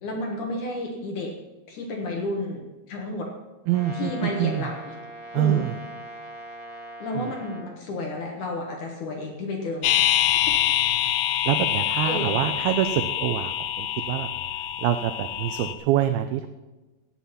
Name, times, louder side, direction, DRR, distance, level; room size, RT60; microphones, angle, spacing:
voice 1, 0.0-1.3 1.7-3.3 3.9-4.9 5.3-5.6 7.0-10.5 12.1-12.4, left 2 dB, 65° left, 1 dB, 2.1 m, -31 dB
Brass instrument, 3.7-7.7, right 1 dB, 15° right, 1.2 m, -41 dB
voice 2, 3.7-4.7 5.3-5.7 7.1-7.3 11.5-14.3 14.8-16.5, right 12 dB, 85° right, 9 dB, 2.1 m, -25 dB
sound 1, 9.8-15.7, left 12 dB, 90° left, 3.0 m, -25 dB
17.5 x 7.8 x 5.7 m, 1.2 s
omnidirectional pair, 5.0 m